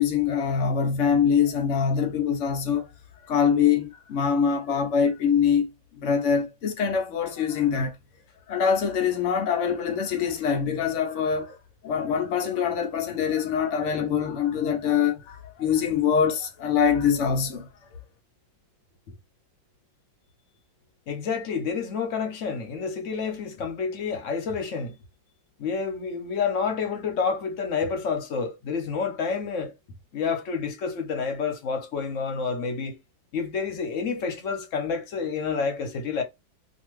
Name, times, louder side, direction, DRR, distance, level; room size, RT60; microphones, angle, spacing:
voice 1, 0.0-2.9 3.3-5.7 5.9-8.0 8.5-11.6 11.8-17.7, left 7 dB, 75° left, 0.6 m, -24 dB
voice 2, 21.1-25.0 25.6-29.7 30.1-33.0 33.3-36.2, left 5 dB, 55° left, 0.9 m, -29 dB
2.8 x 2.5 x 3.0 m
omnidirectional pair, 2.0 m